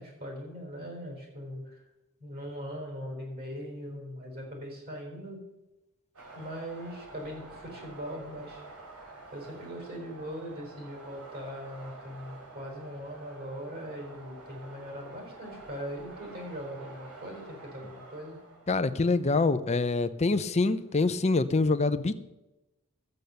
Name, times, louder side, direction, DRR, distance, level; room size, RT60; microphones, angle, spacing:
voice 1, 0.0-1.8 2.2-5.4 6.3-8.6 9.3-18.4, equal, 45° right, 0 dB, 4.0 m, -40 dB
sound 1, 6.1-21.0, right 2 dB, 85° right, 3.8 m, -49 dB
voice 2, 18.7-22.1, left 3 dB, 30° left, 11 dB, 0.6 m, -25 dB
13.0 x 8.2 x 6.8 m, 1.0 s
head